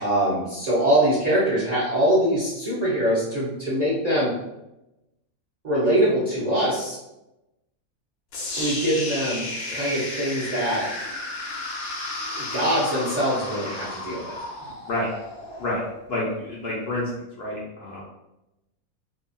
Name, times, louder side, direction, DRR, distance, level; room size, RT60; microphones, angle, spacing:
voice 1, 0.0-4.3 5.6-7.0 8.6-10.9 12.4-14.4, right 1 dB, 45° right, -9 dB, 0.5 m, -23 dB
sound 1, 8.3-16.4, left 2 dB, 85° left, 1.1 m, -33 dB
voice 2, 16.1-18.0, left 1 dB, 60° left, -5 dB, 0.7 m, -29 dB
2.7 x 2.2 x 2.5 m, 0.92 s
omnidirectional pair, 1.5 m